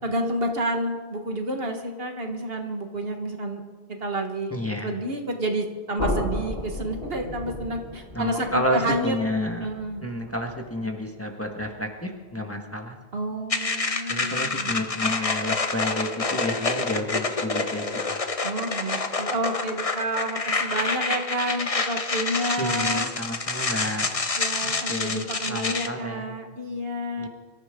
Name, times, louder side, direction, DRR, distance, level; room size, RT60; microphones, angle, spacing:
voice 1, 0.0-3.6 3.9-4.5 4.8-9.1 9.6-10.1 13.1-14.7 18.4-23.1 24.4-27.3, right 1 dB, 65° right, 4 dB, 1.7 m, -30 dB
voice 2, 4.5-4.9 8.1-9.7 10.0-12.9 14.1-18.2 22.6-24.2 24.6-26.4 27.2-27.3, left 1 dB, 15° left, 2 dB, 1.6 m, -30 dB
sound 1, 6.0-11.9, left 1 dB, 75° left, 3.7 m, -34 dB
sound 2, 13.5-25.9, left 3 dB, 35° left, 1.0 m, -27 dB
24.0 x 14.0 x 3.7 m, 1.5 s
omnidirectional pair, 1.1 m